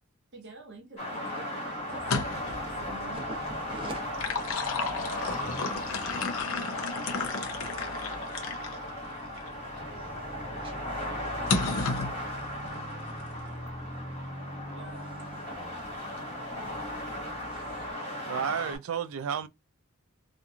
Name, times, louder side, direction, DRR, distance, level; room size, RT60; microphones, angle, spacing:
voice 1, 0.3-3.6 14.7-15.0, right 2 dB, 55° right, 0.8 m, -48 dB
sound 1, 1.0-18.8, left 1 dB, 30° left, 1.4 m, -36 dB
sound 2, 1.9-2.6 3.9-8.8 9.4-9.5 11.5-12.1, left 4 dB, 75° left, 0.5 m, -32 dB
sound 3, 1.9-17.9, equal, 10° left, 1.3 m, -46 dB
voice 2, 2.9-4.1 4.3-4.6 9.6-11.6 12.1-12.2 13.8-14.0 14.9-15.8 16.6-17.0 17.5-17.9, right 1 dB, 25° right, 0.8 m, -47 dB
voice 3, 18.3-19.5, right 7 dB, 75° right, 0.4 m, -31 dB
2.9 x 2.5 x 2.3 m
head